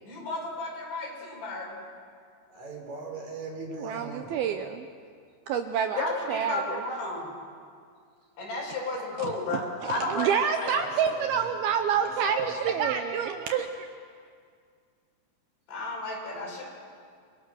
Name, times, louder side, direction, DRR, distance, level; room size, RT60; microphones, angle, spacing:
voice 1, 0.0-1.8 6.0-7.3 8.4-10.3 10.6-10.9 15.7-16.6, left 2 dB, 85° left, -4 dB, 7.9 m, -33 dB
voice 2, 2.5-4.4 10.7-11.5 11.9-12.9, right 2 dB, 40° right, 2 dB, 4.8 m, -40 dB
voice 3, 3.8-4.9 5.5-6.6 9.2-13.7, right 7 dB, 75° right, 7 dB, 2.4 m, -28 dB
30.0 x 22.0 x 6.4 m, 2.1 s
omnidirectional pair, 5.2 m